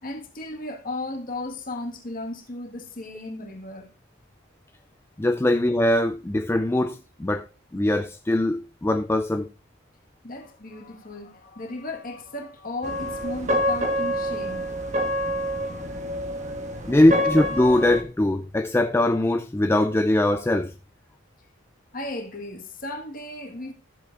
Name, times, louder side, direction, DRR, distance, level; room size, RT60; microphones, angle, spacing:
voice 1, 0.0-3.9 10.2-15.0 15.4-15.5 16.0-16.4 21.9-23.7, left 2 dB, 45° left, 1.7 m, -35 dB
voice 2, 5.2-7.5 7.7-9.5 16.9-20.7, left 1 dB, 10° left, 0.4 m, -21 dB
sound 1, 12.8-18.0, equal, 35° right, 1.3 m, -27 dB
13.5 x 7.5 x 2.5 m
head